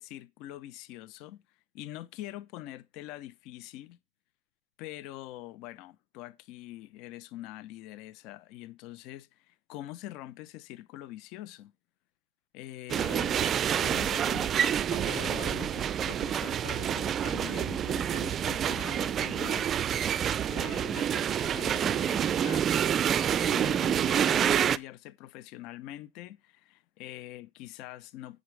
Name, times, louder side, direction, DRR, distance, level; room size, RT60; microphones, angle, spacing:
voice 1, 0.0-1.4 1.7-4.0 4.8-11.7 12.5-22.7 23.1-28.4, left 15 dB, 50° left, 0.8 m, -44 dB
sound 1, 12.9-24.8, right 9 dB, 25° right, 0.5 m, -28 dB
8.7 x 6.4 x 4.7 m
supercardioid pair, 140°, 0 cm